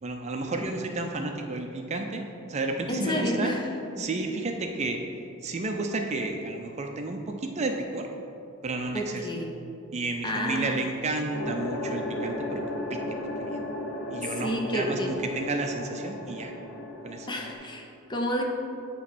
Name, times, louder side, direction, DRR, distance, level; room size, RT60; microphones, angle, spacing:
voice 1, 0.0-3.5 4.0-5.0 5.4-8.1 8.6-9.3 9.9-12.6 12.9-13.0 13.4-13.6 14.1-16.5 17.0-17.3, right 2 dB, 30° right, 3 dB, 0.5 m, -31 dB
voice 2, 2.9-3.6 4.0-4.1 8.9-9.5 10.2-10.7 14.4-15.1 17.3-18.4, equal, 20° left, 1 dB, 0.7 m, -30 dB
sound 1, 11.3-17.5, left 1 dB, 80° left, 1.1 m, -35 dB
8.4 x 3.1 x 6.1 m, 2.6 s
head